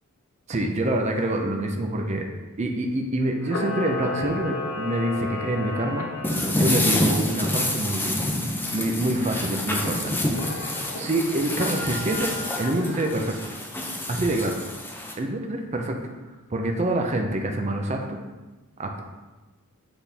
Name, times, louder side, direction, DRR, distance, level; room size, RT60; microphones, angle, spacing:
voice 1, 0.5-2.3 2.6-6.1 6.5-8.2 8.7-10.0 10.4-10.5 10.9-13.3 14.1-14.6 15.2-16.0 16.5-18.2 18.8-19.0, right 1 dB, 30° right, 2 dB, 0.6 m, -26 dB
Camera, 3.4-6.7 10.3-11.0 11.5-13.3, left 3 dB, 70° left, 0.9 m, -33 dB
sound 1, 6.2-15.1, left 1 dB, 10° left, 0.6 m, -28 dB
7.9 x 4.1 x 3.5 m, 1.2 s
head